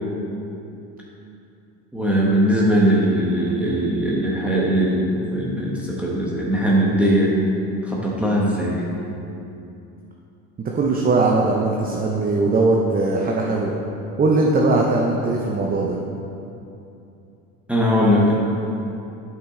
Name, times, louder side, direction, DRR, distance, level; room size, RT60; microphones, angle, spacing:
voice 1, 1.9-7.4 7.8-8.9 17.7-18.3, equal, 5° right, -5 dB, 1.0 m, -20 dB
voice 2, 10.6-13.7 14.2-16.0, right 3 dB, 25° right, -1 dB, 0.7 m, -20 dB
8.7 x 5.8 x 3.8 m, 2.8 s
supercardioid pair, 105°, 38 cm